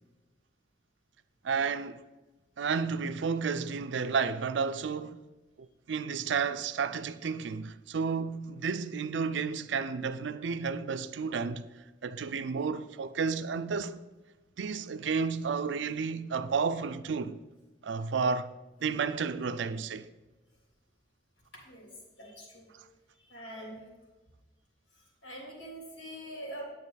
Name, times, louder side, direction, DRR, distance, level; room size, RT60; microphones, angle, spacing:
voice 1, 1.4-2.1 2.6-5.2 5.6-11.6 12.0-14.0 14.6-17.4 17.8-18.5 18.8-20.1, right 5 dB, 75° right, 0.4 m, -32 dB
voice 2, 21.5-22.7 23.1-23.9 24.9-26.6, right 1 dB, 80° left, 3.2 m, -45 dB
9.6 x 8.5 x 4.0 m
head